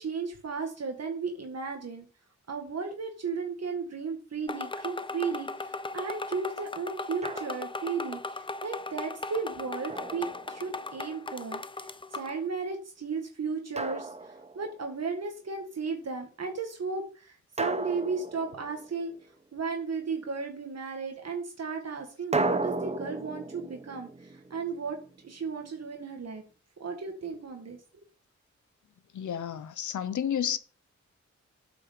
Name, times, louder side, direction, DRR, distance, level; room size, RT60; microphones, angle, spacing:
voice 1, 0.0-2.1 2.5-19.1 19.5-25.0 25.2-26.4 26.8-28.0, right 5 dB, 60° right, 1.7 m, -35 dB
sound 1, 4.5-12.4, left 3 dB, 15° left, 0.5 m, -38 dB
Drum, 7.2-7.9 9.9-11.0 13.8-14.9 17.6-19.2 22.3-25.3, right 3 dB, 20° right, 1.0 m, -35 dB
voice 2, 29.1-30.6, left 9 dB, 85° left, 0.7 m, -31 dB
8.4 x 6.0 x 6.8 m
wide cardioid pair, 100°, 29 cm